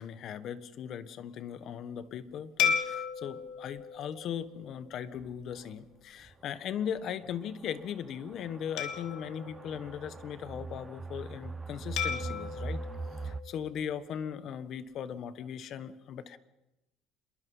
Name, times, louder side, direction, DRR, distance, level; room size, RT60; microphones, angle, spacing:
voice 1, 0.0-12.8 13.2-16.4, left 8 dB, 50° left, 13 dB, 1.4 m, -38 dB
sound 1, 2.6-5.3 5.9-6.0 8.8-10.6 12.0-14.3, left 7 dB, 70° left, 3.5 m, -35 dB
sound 2, 5.2-5.3 5.7-5.8 6.3-6.4 7.2-13.4, right 3 dB, 20° right, 0.8 m, -41 dB
27.5 x 22.5 x 5.6 m, 0.93 s
cardioid pair, 130°, 0 cm